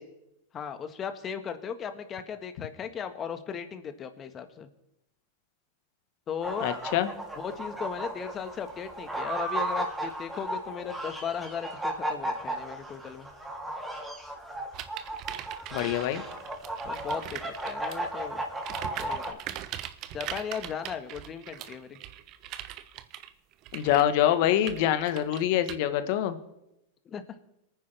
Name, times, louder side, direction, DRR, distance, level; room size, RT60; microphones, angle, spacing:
voice 1, 0.5-4.7 6.3-6.7 7.4-13.3 16.8-18.4 19.0-19.4 20.1-22.0 27.0-27.2, left 7 dB, 30° left, 8 dB, 1.6 m, -37 dB
sound 1, 6.4-19.3, right 1 dB, 10° right, 3.1 m, -35 dB
voice 2, 6.6-7.1 15.7-16.2 23.7-26.4, left 11 dB, 60° left, 11 dB, 1.3 m, -25 dB
sound 2, 14.7-18.1 18.6-25.8, right 12 dB, 45° right, 0.9 m, -41 dB
22.5 x 9.7 x 3.5 m, 0.87 s
hypercardioid pair, 110°, 0 cm